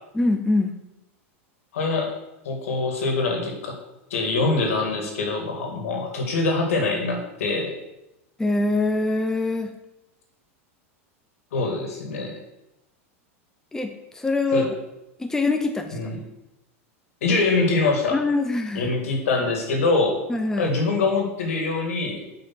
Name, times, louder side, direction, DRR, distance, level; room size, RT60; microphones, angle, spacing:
voice 1, 0.1-0.8 8.4-9.7 13.7-14.7 15.2-16.0 18.1-18.9 20.3-20.7, left 2 dB, 5° left, 4 dB, 0.7 m, -23 dB
voice 2, 1.7-2.1 2.5-3.8 4.1-7.7 11.5-12.4 14.5-14.7 15.9-16.2 17.2-18.2 18.7-20.2 20.6-22.2, left 3 dB, 80° left, 2 dB, 2.0 m, -24 dB
5.7 x 5.2 x 6.0 m, 0.94 s
hypercardioid pair, 115°, 7 cm